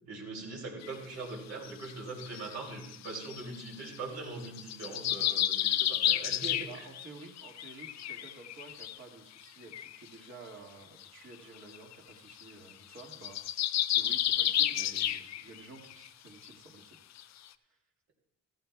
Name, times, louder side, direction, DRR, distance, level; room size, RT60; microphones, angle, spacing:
voice 1, 0.0-6.8, right 3 dB, 60° right, -1 dB, 2.8 m, -42 dB
sound 1, 0.8-0.9 1.6-4.0 4.4-7.1 7.4-9.0 9.4-9.5 9.7-10.0 11.0-11.1 11.3-11.4 11.7-11.9 12.3-12.4 12.7-15.6 15.9-16.1 16.5-16.6 17.2-17.3, left 12 dB, 60° left, 0.5 m, -31 dB
voice 2, 6.7-13.4 13.9-17.0 17.6-17.8, right 3 dB, 45° right, 0 dB, 1.9 m, -51 dB
14.5 x 14.0 x 2.3 m, 0.83 s
cardioid pair, 90°, 30 cm